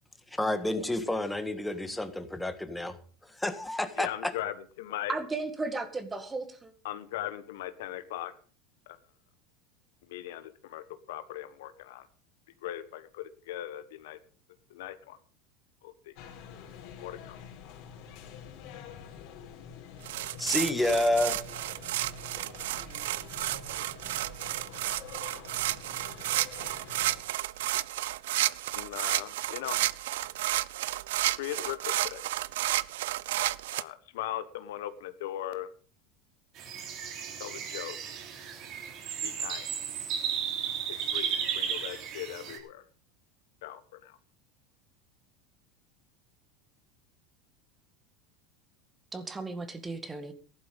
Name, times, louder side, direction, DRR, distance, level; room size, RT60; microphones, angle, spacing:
voice 1, 0.3-3.0 3.4-4.3 20.4-21.4, left 1 dB, 5° left, 1.6 m, -29 dB
voice 2, 4.0-5.1 6.8-8.3 10.1-10.8 11.1-12.0 12.6-14.2 14.7-15.2 17.0-17.3 28.7-29.8 31.4-32.2 33.7-35.7 37.4-38.0 39.2-39.7 41.1-42.8 43.6-43.8, left 13 dB, 80° left, 1.3 m, -38 dB
voice 3, 5.1-6.7 49.1-50.3, right 3 dB, 15° right, 2.0 m, -35 dB
sound 1, 16.2-27.2, left 8 dB, 60° left, 4.1 m, -47 dB
sound 2, 20.0-33.8, right 15 dB, 80° right, 0.5 m, -32 dB
sound 3, 36.6-42.6, right 8 dB, 50° right, 3.6 m, -34 dB
14.5 x 11.5 x 5.3 m
supercardioid pair, 115°, 0 cm